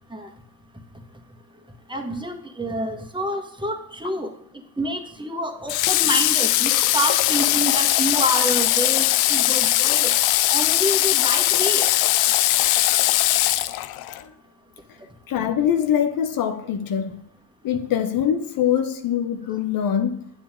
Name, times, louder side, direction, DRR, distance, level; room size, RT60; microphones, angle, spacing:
voice 1, 1.9-4.3 4.8-10.1 10.5-11.9, right 1 dB, 15° right, 1.6 m, -28 dB
Water / Water tap faucet, 5.7-14.2, left 15 dB, 85° left, 0.5 m, -20 dB
voice 2, 15.3-17.2 17.6-20.3, left 9 dB, 70° left, 0.9 m, -23 dB
8.9 x 7.2 x 3.7 m
supercardioid pair, 65°, 36 cm